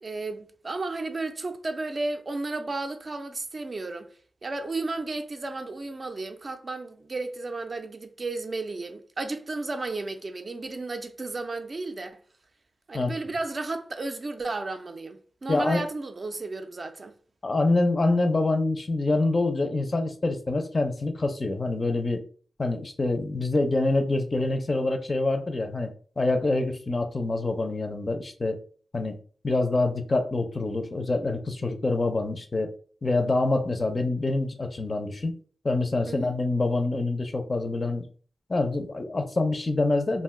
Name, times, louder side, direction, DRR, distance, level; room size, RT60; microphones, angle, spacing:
voice 1, 0.0-4.1 4.4-12.2 12.9-17.1 36.1-36.3, right 3 dB, 40° right, 0.4 m, -33 dB
voice 2, 15.5-15.8 17.4-22.2 22.6-28.6 28.9-29.2 29.4-32.7 33.0-35.3 35.6-38.1 38.5-40.2, left 2 dB, 35° left, 0.4 m, -26 dB
2.5 x 2.1 x 3.5 m
wide cardioid pair, 95°, 0 cm